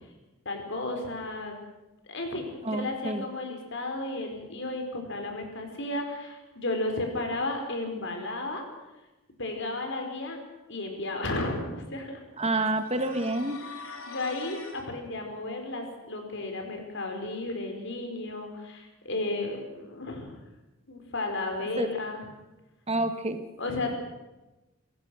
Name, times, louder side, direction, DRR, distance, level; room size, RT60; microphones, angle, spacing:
voice 1, 0.4-1.6 2.1-8.6 9.4-10.4 10.7-12.2 13.8-20.4 20.9-22.2 23.6-24.0, left 2 dB, 60° left, 4 dB, 4.6 m, -33 dB
voice 2, 2.6-3.2 12.4-13.6 21.8-21.9 22.9-23.4, right 2 dB, 30° right, 8 dB, 1.4 m, -28 dB
sound 1, 12.7-14.9, left 4 dB, 80° left, 3.1 m, -43 dB
27.0 x 16.0 x 6.3 m, 1.1 s
head